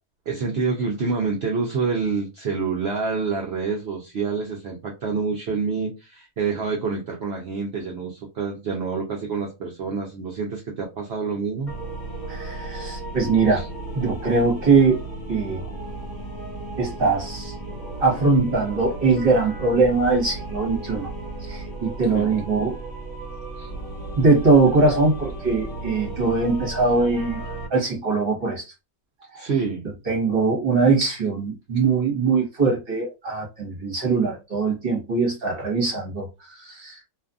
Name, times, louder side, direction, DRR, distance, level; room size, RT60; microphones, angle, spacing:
voice 1, 0.3-11.7 13.5-13.7 22.1-22.4 23.6-23.7 29.3-29.8, right 5 dB, 65° right, 0.6 m, -27 dB
sound 1, 11.7-27.7, right 2 dB, 45° left, 1.3 m, -34 dB
voice 2, 12.3-13.6 13.9-15.0 15.3-15.6 16.8-17.5 18.0-21.1 21.5-22.8 24.2-27.4 27.7-28.6 29.3-29.5 30.1-36.2 36.6-37.0, right 4 dB, 40° right, 1.1 m, -21 dB
2.6 x 2.4 x 2.3 m
omnidirectional pair, 1.6 m